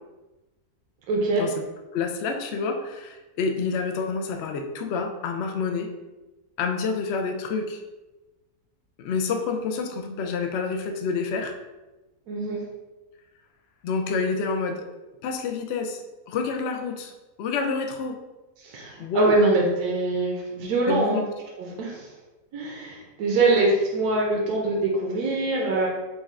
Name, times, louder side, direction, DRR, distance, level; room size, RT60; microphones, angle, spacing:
voice 1, 1.1-1.4 12.3-12.6 18.6-21.3 21.6-22.1 22.5-25.9, right 2 dB, 80° right, -2 dB, 1.2 m, -24 dB
voice 2, 1.9-5.9 6.6-7.8 9.0-11.6 13.8-14.9 15.2-16.0 16.3-17.1 17.4-18.2 19.0-19.4 20.9-21.2, left 4 dB, 75° left, 4 dB, 0.6 m, -28 dB
5.2 x 2.3 x 3.6 m, 1.1 s
omnidirectional pair, 1.6 m